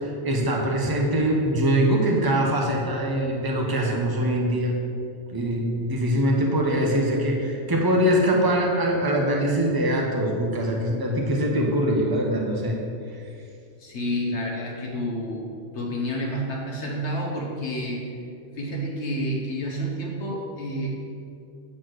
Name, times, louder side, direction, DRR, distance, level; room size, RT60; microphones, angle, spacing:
voice 1, 0.0-4.7 5.3-12.8, right 1 dB, 20° right, 0 dB, 0.9 m, -23 dB
voice 2, 13.8-18.0 18.5-20.9, equal, 70° left, -2 dB, 1.4 m, -29 dB
8.6 x 4.3 x 6.2 m, 2.4 s
omnidirectional pair, 1.2 m